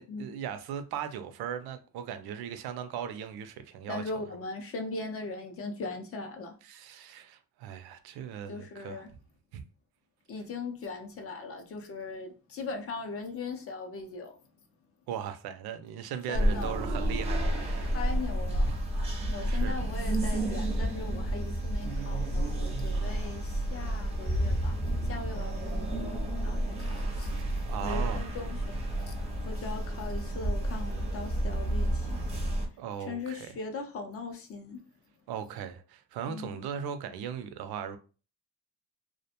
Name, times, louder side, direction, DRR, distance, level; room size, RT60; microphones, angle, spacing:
voice 1, 0.0-4.0 6.6-9.1 9.5-9.6 15.1-18.0 18.7-18.8 19.5-19.9 22.9-23.5 27.7-28.3 29.7-29.8 32.8-33.5 35.3-38.0, right 8 dB, 80° right, 0.5 m, -38 dB
voice 2, 3.9-6.5 8.5-9.1 10.3-14.3 16.3-16.8 17.8-18.7 19.3-24.8 25.0-27.3 27.8-28.8 29.1-29.2 29.4-32.2 33.1-34.8 36.2-36.5, left 3 dB, 40° left, 0.4 m, -39 dB
sound 1, 16.3-32.7, right 1 dB, 15° right, 0.5 m, -30 dB
2.4 x 2.1 x 2.8 m
cardioid pair, 155°, 37 cm